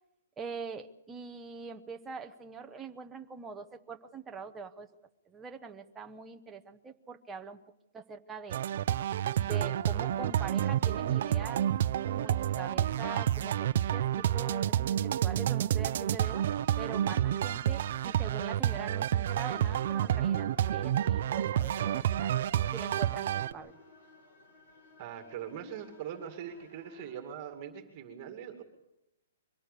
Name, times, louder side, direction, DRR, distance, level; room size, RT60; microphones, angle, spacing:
voice 1, 0.4-4.9 5.3-7.6 7.9-8.6 9.4-11.7 12.1-16.5 16.8-22.3 22.7-23.7, right 5 dB, 10° right, 5 dB, 0.8 m, -43 dB
sound 1, 8.5-23.5, right 11 dB, 45° right, 0.7 m, -29 dB
sound 2, 16.5-27.2, left 1 dB, 50° left, 7.6 m, -55 dB
voice 2, 17.0-17.4 25.0-28.6, right 9 dB, 30° right, 6 dB, 2.3 m, -42 dB
23.5 x 17.5 x 6.8 m, 0.88 s
hypercardioid pair, 170°, 0 cm